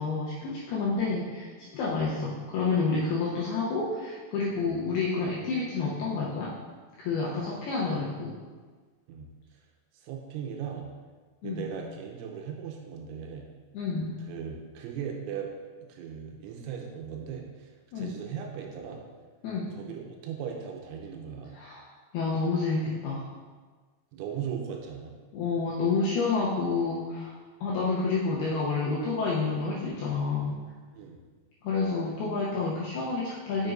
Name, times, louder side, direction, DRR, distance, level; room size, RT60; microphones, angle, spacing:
voice 1, 0.0-6.5 7.0-8.3 11.4-11.7 13.7-14.2 17.9-18.2 19.4-19.7 21.5-21.8 22.1-23.3 25.3-30.6 31.6-33.7, left 4 dB, 80° left, -6 dB, 2.2 m, -29 dB
voice 2, 9.9-10.9 11.4-13.5 14.3-15.5 15.8-19.0 19.7-21.6 24.1-25.1 30.9-31.2, right 7 dB, 85° right, 1 dB, 3.1 m, -38 dB
7.7 x 6.7 x 2.5 m, 1.4 s
omnidirectional pair, 5.4 m